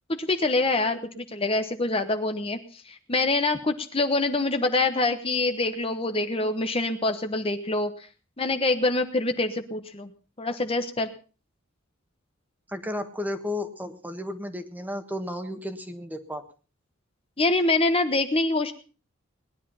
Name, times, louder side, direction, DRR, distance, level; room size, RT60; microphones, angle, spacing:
voice 1, 0.1-7.9 8.4-10.1 10.4-11.1 17.4-18.7, left 2 dB, 30° left, 8 dB, 1.1 m, -25 dB
voice 2, 12.7-16.4, left 1 dB, 10° right, 8 dB, 1.5 m, -33 dB
20.0 x 11.0 x 5.6 m, 0.37 s
head